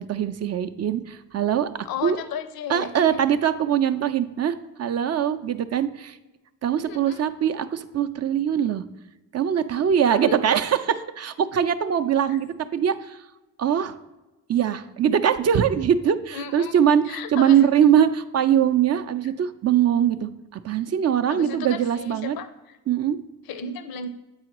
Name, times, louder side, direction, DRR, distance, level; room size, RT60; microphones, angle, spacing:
voice 1, 0.0-2.2 2.7-6.2 6.6-8.8 9.3-12.5 12.7-13.2 13.6-14.0 14.5-22.4 22.9-23.2, right 9 dB, 40° right, 9 dB, 0.5 m, -22 dB
voice 2, 1.8-3.2 6.9-7.2 10.1-10.6 12.3-12.4 16.3-17.7 21.3-22.8 23.5-24.1, left 6 dB, 55° left, 11 dB, 0.6 m, -34 dB
7.6 x 4.8 x 3.0 m, 1.1 s
supercardioid pair, 55°, 42 cm